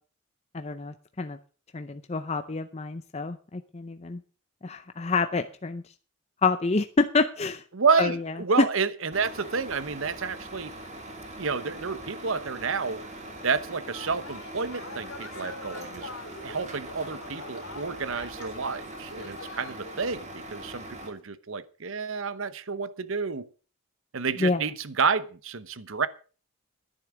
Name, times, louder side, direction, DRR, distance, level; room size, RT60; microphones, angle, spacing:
voice 1, 0.5-1.4 1.7-4.2 4.6-5.8 6.4-7.6 8.0-8.2 8.6-8.7 24.4-24.6, left 3 dB, 30° left, 0.6 m, -27 dB
voice 2, 7.7-10.7 11.4-13.0 13.4-16.1 16.4-23.5 24.1-26.1, right 5 dB, 65° right, 0.9 m, -29 dB
Truck, 9.1-21.1, right 1 dB, 35° right, 2.5 m, -42 dB
sound 1, 12.5-20.2 20.5-21.2, left 3 dB, 75° left, 3.1 m, -45 dB
10.5 x 10.0 x 6.1 m
head